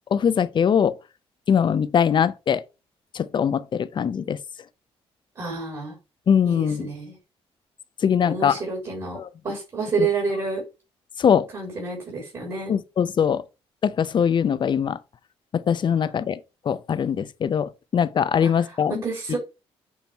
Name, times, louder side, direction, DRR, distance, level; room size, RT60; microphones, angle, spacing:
voice 1, 0.1-1.0 1.5-2.6 3.1-4.4 6.3-6.9 8.0-8.6 9.1-9.3 10.0-10.1 11.2-11.5 12.7-13.4 13.8-15.0 15.5-16.4 16.7-19.0, left 7 dB, 45° left, 0.6 m, -22 dB
voice 2, 5.4-5.9 6.4-7.2 8.2-9.2 9.4-10.6 11.5-12.7 18.4-18.8 19.0-19.4, right 4 dB, 45° right, 3.3 m, -29 dB
7.1 x 3.0 x 4.6 m
cardioid pair, 85°, 11 cm